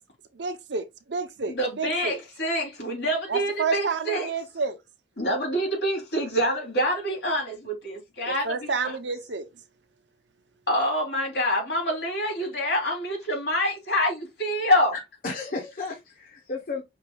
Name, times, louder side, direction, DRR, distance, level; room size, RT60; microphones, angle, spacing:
voice 1, 0.3-2.2 3.3-4.8 8.2-9.5, right 4 dB, 80° right, 0.8 m, -30 dB
voice 2, 1.5-4.3 5.2-8.9 10.7-14.9, equal, 70° left, 2.8 m, -26 dB
voice 3, 14.9-16.8, left 3 dB, 50° left, 1.0 m, -34 dB
5.6 x 3.6 x 2.3 m
head